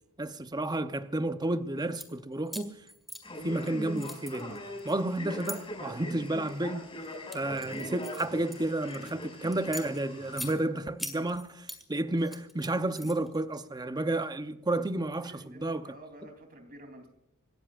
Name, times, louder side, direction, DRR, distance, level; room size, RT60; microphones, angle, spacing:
voice 1, 0.2-2.8 3.4-4.6 4.8-6.9 7.3-15.9, right 2 dB, 20° right, 0.7 m, -31 dB
sound 1, 1.8-2.1 2.5-3.7 4.0-5.6 6.2-6.6 7.0-9.1 9.5-10.5 11.0-11.8 12.2-13.4, equal, ahead, 2.0 m, -42 dB
Male speech man speaking, 3.2-10.5, left 1 dB, 25° left, 6.1 m, -41 dB
voice 2, 15.2-17.1, right 1 dB, 45° right, 3.4 m, -50 dB
26.5 x 14.0 x 2.5 m
head